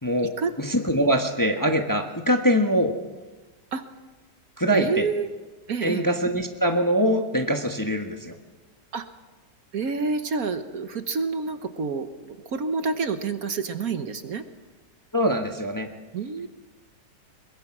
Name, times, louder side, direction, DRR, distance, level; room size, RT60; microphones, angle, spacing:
voice 1, 0.0-2.9 4.6-5.1 5.8-8.4 15.1-15.9, equal, 15° left, 4 dB, 1.1 m, -23 dB
voice 2, 4.7-5.3 5.7-6.1 8.9-9.0 9.7-14.4 16.1-16.5, right 4 dB, 60° right, 9 dB, 1.4 m, -28 dB
22.5 x 21.5 x 6.1 m, 1.2 s
omnidirectional pair, 1.9 m